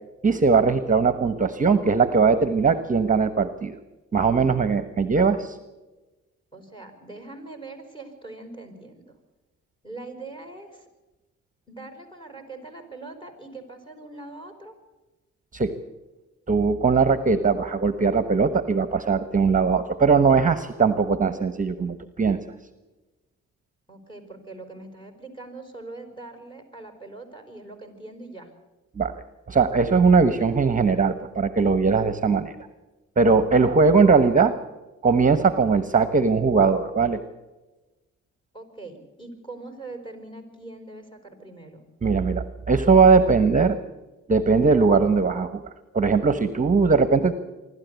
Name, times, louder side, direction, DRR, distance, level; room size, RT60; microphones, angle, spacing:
voice 1, 0.2-3.8 4.1-5.6 15.5-15.7 16.5-22.4 28.9-29.1 29.5-32.5 33.2-34.5 35.0-37.2 42.0-43.8 44.3-45.6 45.9-47.3, right 4 dB, 25° right, 11 dB, 1.1 m, -20 dB
voice 2, 6.5-9.0 9.8-10.9 11.7-14.7 23.9-28.5 38.5-41.8, right 2 dB, 15° left, 6 dB, 5.1 m, -42 dB
25.0 x 12.5 x 8.2 m, 1.1 s
cardioid pair, 90°, 30 cm